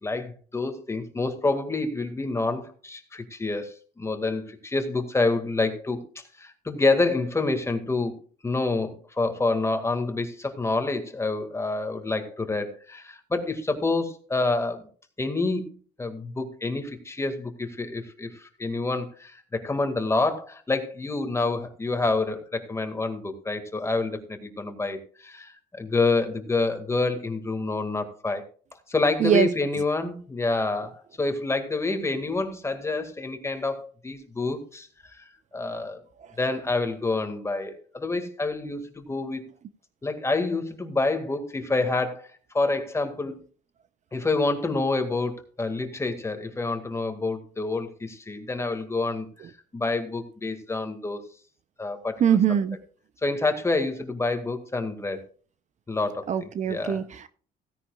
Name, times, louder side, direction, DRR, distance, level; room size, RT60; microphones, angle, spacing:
voice 1, 0.0-8.2 8.4-14.8 15.2-15.7 16.0-28.4 28.9-35.2 35.5-36.0 36.4-39.4 40.0-43.3 44.1-51.2 51.8-52.4 53.2-55.2 55.9-57.0, left 3 dB, 15° left, 6 dB, 2.0 m, -28 dB
voice 2, 52.2-52.8 56.3-57.3, right 9 dB, 45° right, 13 dB, 0.7 m, -22 dB
16.5 x 10.0 x 2.4 m, 0.42 s
cardioid pair, 110°, 17 cm